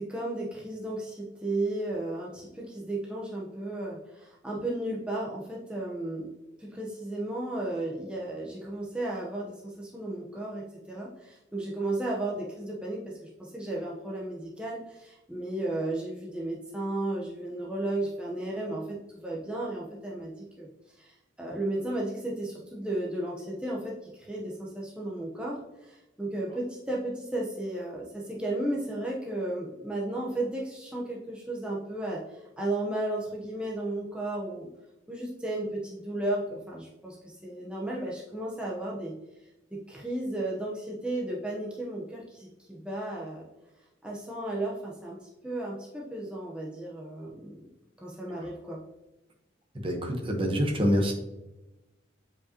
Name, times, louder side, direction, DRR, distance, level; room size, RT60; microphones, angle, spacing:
voice 1, 0.0-6.3 6.6-20.7 21.0-32.2 32.6-34.7 35.1-39.1 39.7-43.4 44.0-47.6 48.0-48.8, right 1 dB, 5° right, -4 dB, 0.8 m, -34 dB
voice 2, 49.8-51.1, equal, 30° right, 2 dB, 1.0 m, -26 dB
8.0 x 5.0 x 2.8 m, 0.99 s
head